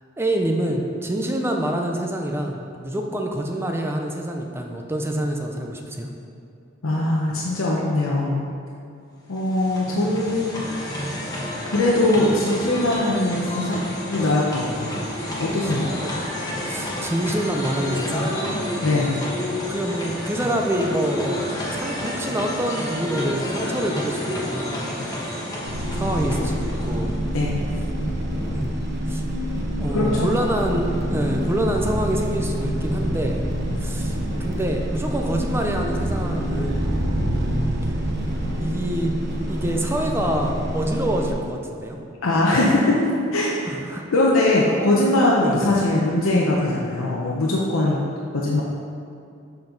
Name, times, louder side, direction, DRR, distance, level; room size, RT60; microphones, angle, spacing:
voice 1, 0.2-6.1 15.9-16.1 16.7-18.3 19.7-21.4 21.7-25.2 25.9-27.2 28.4-28.8 29.1-29.2 29.8-33.4 33.8-36.9 38.6-39.1 39.5-42.0 43.7-44.1 45.4-45.7, right 1 dB, 10° right, 2 dB, 0.4 m, -26 dB
voice 2, 6.8-8.4 9.3-10.6 11.6-13.8 14.1-15.0 15.4-15.9 18.8-19.2 27.3-27.6 29.9-30.3 42.2-43.6 44.1-48.0 48.3-48.6, left 2 dB, 80° left, -4 dB, 0.7 m, -21 dB
sound 1, 9.2-27.3, left 1 dB, 20° left, 1.2 m, -30 dB
sound 2, 25.7-41.3, equal, 50° right, 0.8 m, -26 dB
7.0 x 5.4 x 3.9 m, 2.5 s
head